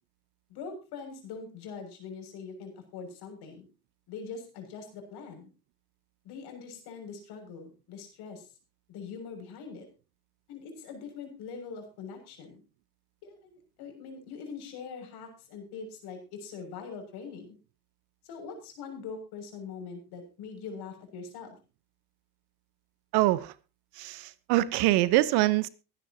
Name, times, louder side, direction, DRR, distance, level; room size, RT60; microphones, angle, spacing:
voice 1, 0.5-3.7 4.1-5.5 6.2-8.5 8.9-9.8 10.5-12.6 13.2-17.5 18.2-21.6, left 5 dB, 55° left, 6.8 m, -43 dB
voice 2, 23.1-23.5 24.0-25.7, right 17 dB, 55° right, 1.2 m, -24 dB
23.5 x 10.5 x 2.9 m
hypercardioid pair, 75°, 47 cm